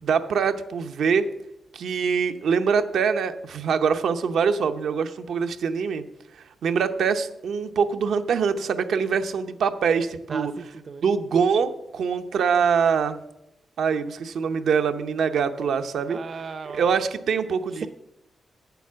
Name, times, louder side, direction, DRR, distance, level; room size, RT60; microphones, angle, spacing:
voice 1, 0.0-1.3 1.7-6.0 6.6-10.5 11.0-13.2 13.8-16.2 16.7-17.9, right 6 dB, 85° right, 8 dB, 0.7 m, -24 dB
voice 2, 10.3-11.0 16.1-17.0 17.7-17.9, right 5 dB, 45° right, 11 dB, 0.5 m, -36 dB
8.3 x 7.0 x 7.4 m, 0.85 s
wide cardioid pair, 145°, 0 cm